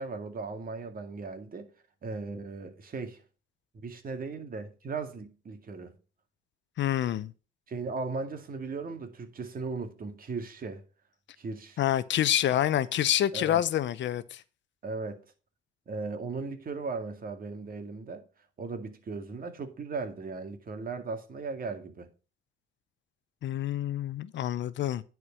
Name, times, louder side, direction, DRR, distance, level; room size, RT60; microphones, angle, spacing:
voice 1, 0.0-1.7 2.0-3.2 3.7-5.9 7.7-10.8 11.4-11.8 13.3-13.6 14.8-15.2 15.9-18.2 18.6-22.1, right 4 dB, 45° right, 2.1 m, -37 dB
voice 2, 6.8-7.3 11.8-14.4 23.4-25.0, left 11 dB, 65° left, 0.7 m, -27 dB
10.0 x 4.7 x 5.7 m
cardioid pair, 90°, 20 cm